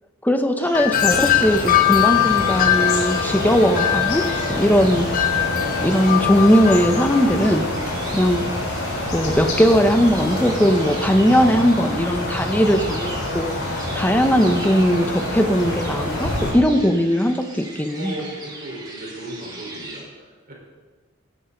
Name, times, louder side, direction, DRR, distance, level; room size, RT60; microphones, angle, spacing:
voice 1, 0.2-4.2 4.5-5.1 5.8-7.7 8.1-8.5 9.1-13.5 13.9-18.1, equal, 10° left, 7 dB, 0.8 m, -19 dB
sound 1, 0.6-20.0, right 2 dB, 20° right, 2.1 m, -38 dB
Wind chime, 0.7-7.5, left 12 dB, 40° left, 0.6 m, -22 dB
sound 2, 0.9-16.5, left 1 dB, 75° left, 3.8 m, -27 dB
voice 2, 7.8-8.2 17.9-20.5, right 1 dB, 45° right, -2 dB, 4.3 m, -36 dB
17.5 x 11.0 x 3.9 m, 1.3 s
head